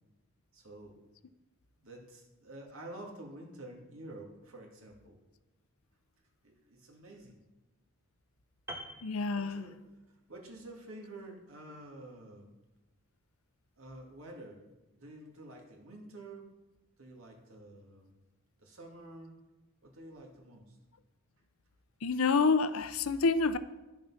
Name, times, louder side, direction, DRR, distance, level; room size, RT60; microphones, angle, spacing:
voice 1, 0.5-1.0 1.8-5.2 6.4-7.4 9.3-9.8 10.1-12.5 13.8-14.6 14.9-16.5 17.0-18.1 18.6-19.4 19.8-20.8, right 1 dB, 80° right, 2.4 m, -49 dB
Piano, 8.7-10.1 10.4-10.6, equal, 10° right, 1.0 m, -46 dB
voice 2, 9.0-9.7 22.0-23.6, left 4 dB, 85° left, 0.6 m, -28 dB
11.0 x 7.2 x 5.7 m
head